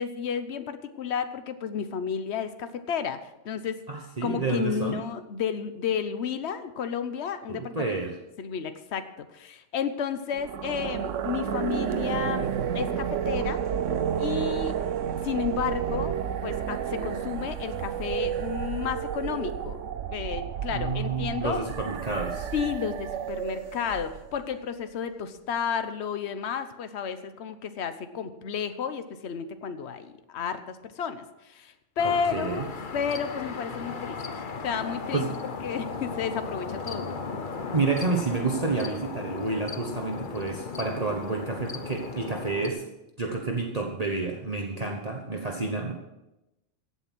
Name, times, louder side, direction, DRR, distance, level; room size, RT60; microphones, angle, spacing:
voice 1, 0.0-3.8 4.2-7.9 8.4-13.6 14.2-14.7 15.2-16.1 16.4-19.8 20.1-21.6 22.5-32.7 32.9-35.3 35.6-37.1 44.8-44.9, left 7 dB, 65° left, 10 dB, 1.2 m, -32 dB
voice 2, 3.9-5.0 7.5-8.1 20.7-22.5 32.3-32.7 35.1-35.3 37.7-42.8 43.2-46.0, right 3 dB, 35° right, 0 dB, 1.3 m, -29 dB
Nemean Roar, 10.3-24.5, right 8 dB, 90° right, 1.1 m, -31 dB
crickets around motorway, 32.0-42.7, left 4 dB, 45° left, 1.1 m, -36 dB
15.5 x 8.3 x 6.1 m, 0.94 s
omnidirectional pair, 1.3 m